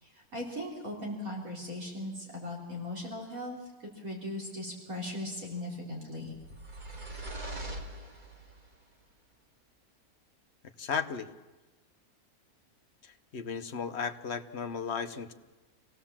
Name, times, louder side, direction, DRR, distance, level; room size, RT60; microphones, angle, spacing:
voice 1, 0.0-3.6 4.0-6.3, left 1 dB, 65° right, -2 dB, 4.3 m, -38 dB
sound 1, 6.3-8.7, right 1 dB, 30° right, 2.2 m, -42 dB
voice 2, 10.8-11.3 13.0-15.3, left 6 dB, 50° left, 7 dB, 1.2 m, -35 dB
27.5 x 17.5 x 7.4 m, 1.2 s
omnidirectional pair, 1.6 m